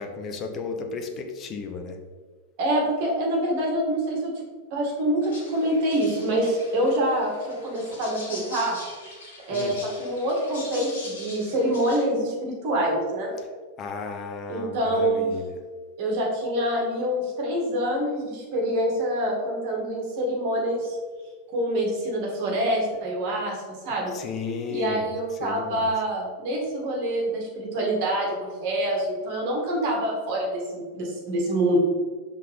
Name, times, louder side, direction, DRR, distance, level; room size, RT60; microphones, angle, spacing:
voice 1, 0.0-2.0 9.5-9.8 13.8-15.5 24.1-25.1 25.4-25.9, left 4 dB, 30° left, 5 dB, 0.7 m, -33 dB
voice 2, 2.6-4.3 4.7-8.8 9.5-13.4 14.5-15.3 16.0-21.0 21.5-23.6 23.8-24.1 24.7-31.8, right 1 dB, 45° right, -1 dB, 1.9 m, -26 dB
sound 1, 5.2-12.0, left 2 dB, 60° left, 1.7 m, -42 dB
5.7 x 3.8 x 5.0 m, 1.5 s
figure-of-eight pair, 90°, 0 cm